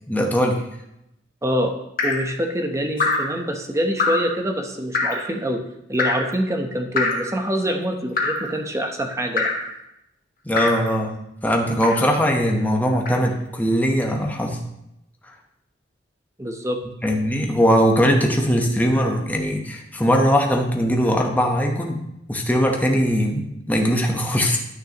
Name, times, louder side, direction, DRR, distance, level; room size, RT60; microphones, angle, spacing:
voice 1, 0.1-0.7 10.4-11.2 11.4-14.6 17.0-22.0 22.3-24.6, equal, 10° left, 1 dB, 1.0 m, -20 dB
voice 2, 1.4-1.7 2.0-5.6 5.9-9.5 16.4-16.8, equal, 15° right, 4 dB, 0.8 m, -25 dB
Drip, 2.0-2.3 3.0-3.4 4.0-4.3 4.9-5.3 6.0-6.3 7.0-7.3 8.2-8.5 9.4-9.7 10.6-10.9 11.8-12.1 13.1-13.2, left 3 dB, 50° left, 1.3 m, -24 dB
11.5 x 6.3 x 2.9 m, 0.84 s
head